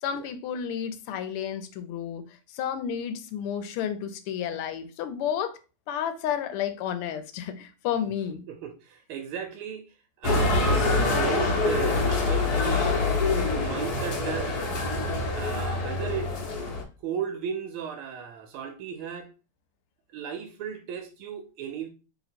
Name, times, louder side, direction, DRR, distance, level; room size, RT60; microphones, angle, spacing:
voice 1, 0.0-5.6 5.9-8.4, left 9 dB, 85° left, 1.5 m, -31 dB
voice 2, 8.3-9.9 10.2-13.0 13.5-14.6 15.4-16.6 17.0-19.3 20.1-21.9, right 8 dB, 80° right, 1.4 m, -35 dB
sound 1, 10.2-16.8, left 3 dB, 55° left, 1.3 m, -25 dB
3.3 x 2.9 x 4.0 m
omnidirectional pair, 2.4 m